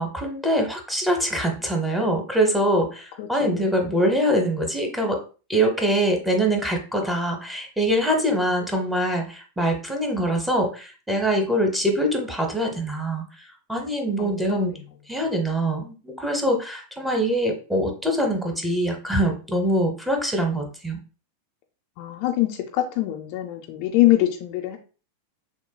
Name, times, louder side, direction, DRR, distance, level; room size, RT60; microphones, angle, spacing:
voice 1, 0.0-5.2 5.5-13.2 13.7-14.7 15.1-21.0, right 1 dB, 5° right, 2 dB, 0.9 m, -24 dB
voice 2, 3.2-3.7 14.2-14.8 22.0-24.8, left 15 dB, 45° left, 3 dB, 0.5 m, -24 dB
6.2 x 2.2 x 2.2 m, 0.36 s
figure-of-eight pair, 90°, 0 cm